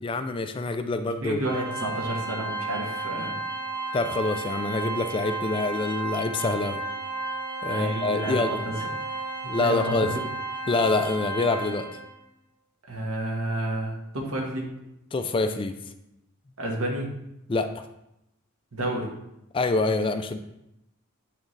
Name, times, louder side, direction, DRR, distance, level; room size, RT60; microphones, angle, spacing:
voice 1, 0.0-1.4 3.9-6.8 7.6-8.6 9.4-10.1 10.7-11.9 15.1-15.8 17.5-17.8 19.5-20.4, left 3 dB, 25° left, 8 dB, 0.3 m, -26 dB
voice 2, 1.2-3.4 7.7-8.9 9.6-10.2 12.9-14.7 16.6-17.1 18.7-19.1, right 1 dB, 90° right, -1 dB, 1.4 m, -30 dB
Organ, 1.4-12.2, right 3 dB, 15° right, 1.0 m, -33 dB
8.6 x 3.6 x 3.2 m, 0.86 s
head